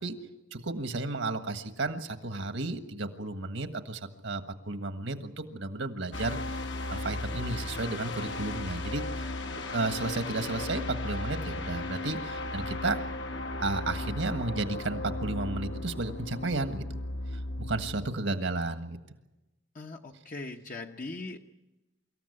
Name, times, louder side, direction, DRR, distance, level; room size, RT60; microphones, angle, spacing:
voice 1, 0.5-13.0 13.6-16.9 17.3-19.0, right 2 dB, 70° right, 8 dB, 1.6 m, -33 dB
sound 1, 6.1-18.1, left 2 dB, 60° left, 1.4 m, -36 dB
voice 2, 19.7-21.5, left 2 dB, 40° left, 2 dB, 0.9 m, -40 dB
25.0 x 14.5 x 9.7 m, 1.0 s
head